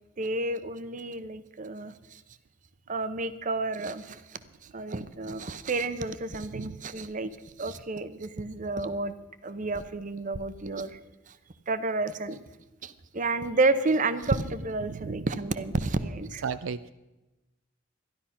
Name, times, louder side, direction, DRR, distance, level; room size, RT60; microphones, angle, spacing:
voice 1, 0.2-2.2 2.9-4.2 4.7-7.3 7.6-9.1 9.4-10.9 11.7-12.4 12.8-16.4, right 3 dB, 40° right, 13 dB, 0.7 m, -30 dB
voice 2, 14.9-15.3 16.4-16.9, right 6 dB, 75° right, 14 dB, 0.4 m, -35 dB
13.0 x 11.5 x 5.7 m, 1.0 s
head